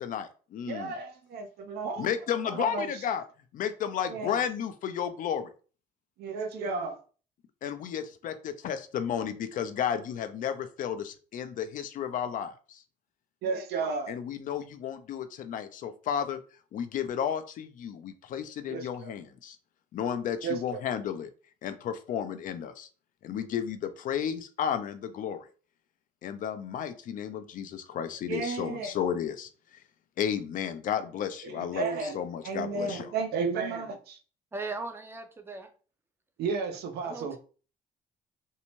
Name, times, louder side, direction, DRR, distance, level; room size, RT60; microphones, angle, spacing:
voice 1, 0.0-0.9 2.0-3.2 3.5-5.5 7.6-12.8 14.1-16.4 16.7-19.6 19.9-21.3 21.6-22.9 23.2-25.5 26.2-29.5 30.2-33.1, left 8 dB, 50° left, 0.4 m, -33 dB
voice 2, 0.7-2.1 2.4-2.9 4.1-4.4 6.2-7.0 13.4-14.2 18.7-19.2 20.4-20.8 28.3-28.9 31.4-34.2 36.4-37.4, right 4 dB, 70° right, 0.6 m, -33 dB
voice 3, 34.5-35.7 37.0-37.4, right 3 dB, 15° right, 0.5 m, -38 dB
2.6 x 2.1 x 2.9 m
cardioid pair, 110°, 17 cm